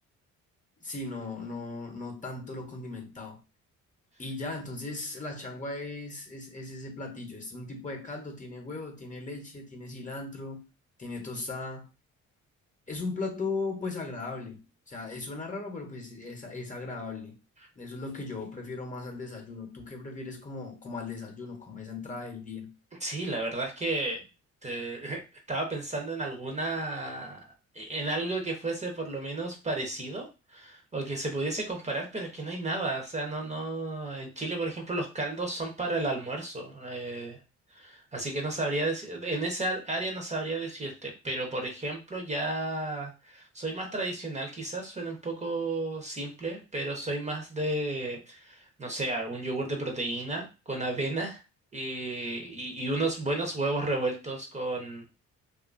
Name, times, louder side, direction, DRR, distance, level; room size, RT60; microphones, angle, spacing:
voice 1, 0.8-3.4 4.2-10.6 11.0-11.8 12.9-17.4 17.8-22.7, left 3 dB, 25° left, 3 dB, 0.8 m, -37 dB
voice 2, 23.0-24.2 24.6-25.2 25.5-27.5 27.7-37.4 37.7-51.4 51.7-55.0, right 2 dB, 25° right, 2 dB, 0.7 m, -32 dB
2.6 x 2.4 x 2.4 m, 0.30 s
cardioid pair, 90°, 30 cm